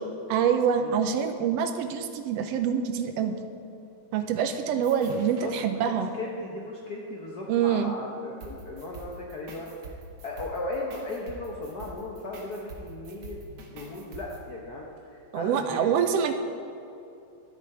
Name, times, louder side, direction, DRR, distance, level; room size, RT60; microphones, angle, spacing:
voice 1, 0.3-3.3 4.1-6.1 7.5-7.9 15.3-16.3, right 7 dB, 80° right, 7 dB, 1.5 m, -25 dB
sound 1, 4.8-5.5 8.4-14.4, right 2 dB, 60° right, 2.4 m, -45 dB
voice 2, 5.1-9.9 10.2-16.0, left 2 dB, 85° left, -1 dB, 0.8 m, -37 dB
12.0 x 10.0 x 4.8 m, 2.7 s
omnidirectional pair, 3.4 m